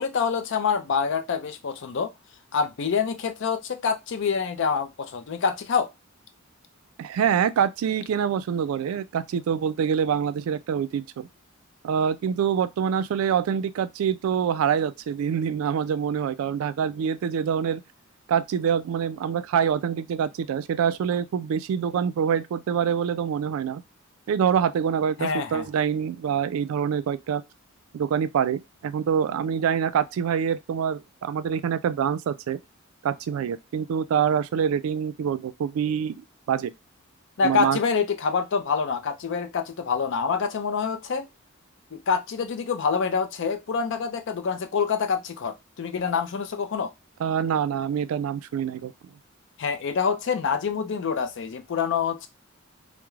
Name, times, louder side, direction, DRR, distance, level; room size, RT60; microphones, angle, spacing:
voice 1, 0.0-2.1 2.5-5.9 25.2-25.7 37.4-41.3 41.9-46.9 49.6-52.3, left 5 dB, 60° left, 0.4 m, -26 dB
voice 2, 7.0-11.3 11.8-17.8 18.3-23.8 24.3-27.4 27.9-32.6 33.0-36.1 36.5-36.7 37.4-37.8 47.2-48.9, right 7 dB, 80° right, 0.3 m, -25 dB
2.3 x 2.0 x 3.0 m
head